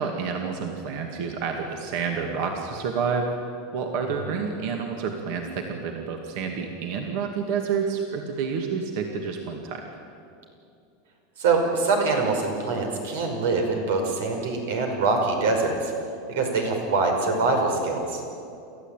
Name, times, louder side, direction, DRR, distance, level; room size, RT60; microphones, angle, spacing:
voice 1, 0.0-3.3 3.7-9.8, right 6 dB, 55° right, 3 dB, 2.2 m, -29 dB
voice 2, 11.4-15.9 16.3-18.2, right 3 dB, 90° right, 3 dB, 5.4 m, -24 dB
29.0 x 14.0 x 9.1 m, 2.6 s
supercardioid pair, 160°, 0 cm